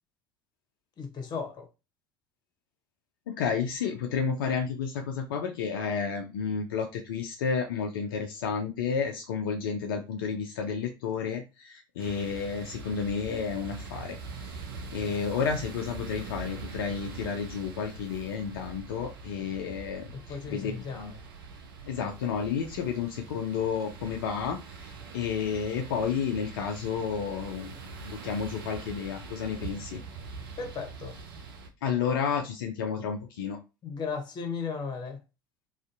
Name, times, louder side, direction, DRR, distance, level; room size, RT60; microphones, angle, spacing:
voice 1, 1.0-1.7 20.1-21.1 29.6-29.7 30.6-31.2 33.8-35.2, left 5 dB, 40° left, 0.8 m, -36 dB
voice 2, 3.3-14.6 14.9-21.1 21.8-30.0 31.8-33.6, left 6 dB, 70° left, 0.4 m, -31 dB
sound 1, 12.0-31.7, right 4 dB, 75° right, 0.5 m, -43 dB
2.5 x 2.4 x 2.4 m
hypercardioid pair, 70°, 12 cm